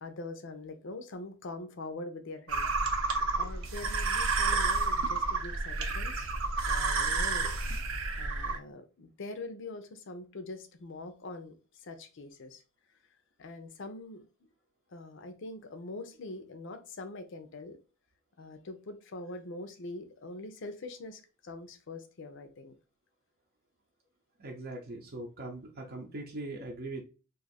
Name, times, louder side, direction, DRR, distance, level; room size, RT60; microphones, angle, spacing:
voice 1, 0.0-2.7 3.4-6.3 6.7-7.4 8.2-11.5 11.8-12.6 13.4-14.5 14.9-17.8 18.4-22.8, left 2 dB, 65° left, 0.6 m, -43 dB
sound 1, 2.5-8.6, right 3 dB, 90° right, 0.6 m, -30 dB
voice 2, 24.4-27.0, right 2 dB, 50° right, 0.6 m, -41 dB
2.6 x 2.4 x 4.0 m
head